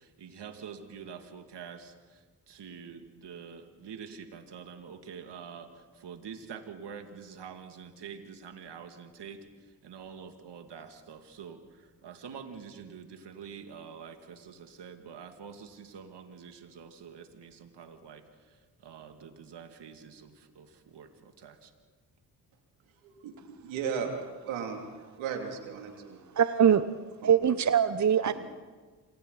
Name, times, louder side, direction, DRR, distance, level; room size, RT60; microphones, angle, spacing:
voice 1, 0.0-21.7, right 6 dB, 60° right, 6 dB, 2.6 m, -46 dB
voice 2, 23.0-24.1 24.4-24.8 25.2-26.2 27.2-27.4, right 7 dB, 80° right, 3 dB, 3.0 m, -36 dB
voice 3, 26.4-26.8 27.2-28.3, right 8 dB, 40° right, 12 dB, 0.9 m, -22 dB
28.0 x 25.0 x 4.1 m, 1.4 s
supercardioid pair, 45°, 46 cm